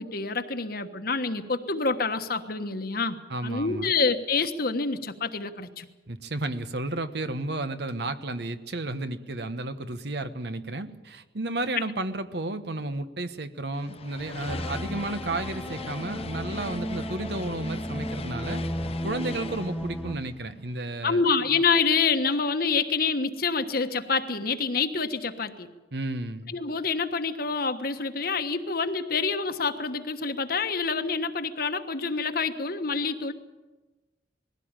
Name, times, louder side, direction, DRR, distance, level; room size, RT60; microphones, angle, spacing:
voice 1, 0.0-5.9 21.0-25.7 26.5-33.3, left 4 dB, 55° left, 8 dB, 1.3 m, -27 dB
voice 2, 3.3-3.9 6.1-18.6 19.0-21.2 25.9-26.5, right 2 dB, 65° right, 11 dB, 1.1 m, -32 dB
sound 1, 13.7-21.2, left 4 dB, 35° left, 0.8 m, -41 dB
sound 2, 14.5-20.2, equal, 5° right, 1.2 m, -34 dB
20.5 x 16.0 x 8.9 m, 1.2 s
head